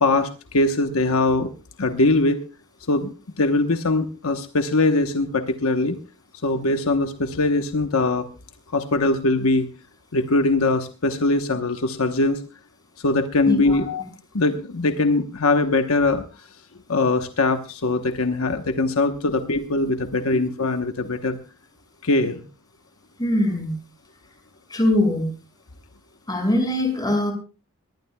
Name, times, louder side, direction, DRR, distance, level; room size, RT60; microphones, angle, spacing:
voice 1, 0.0-1.5 1.8-2.4 2.9-6.0 6.4-8.3 8.7-9.7 10.1-12.4 13.0-14.0 14.3-16.2 16.9-21.4 22.0-22.4, left 2 dB, 75° left, 7 dB, 1.1 m, -21 dB
voice 2, 13.5-13.8 23.2-23.7 24.7-25.3 26.3-27.3, left 1 dB, 20° left, 4 dB, 5.8 m, -22 dB
21.0 x 19.5 x 2.3 m, 0.33 s
head